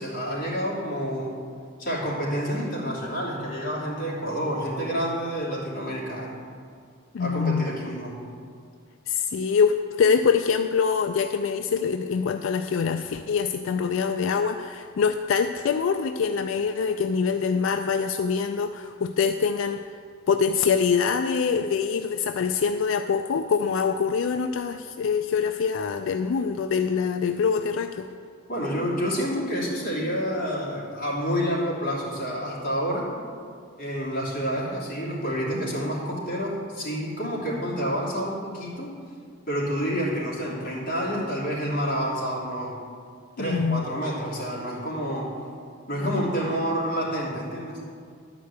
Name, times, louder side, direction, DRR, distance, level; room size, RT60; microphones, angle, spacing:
voice 1, 0.0-1.4 1.8-6.4 7.2-8.2 28.5-33.1 33.8-38.9 39.5-42.8 43.4-45.4 45.9-47.9, equal, 45° left, -5 dB, 2.8 m, -28 dB
voice 2, 7.1-7.7 9.1-20.0 20.3-28.1 43.4-43.8 46.0-46.1, left 6 dB, 85° left, 7 dB, 0.4 m, -24 dB
11.5 x 5.0 x 8.0 m, 2.2 s
head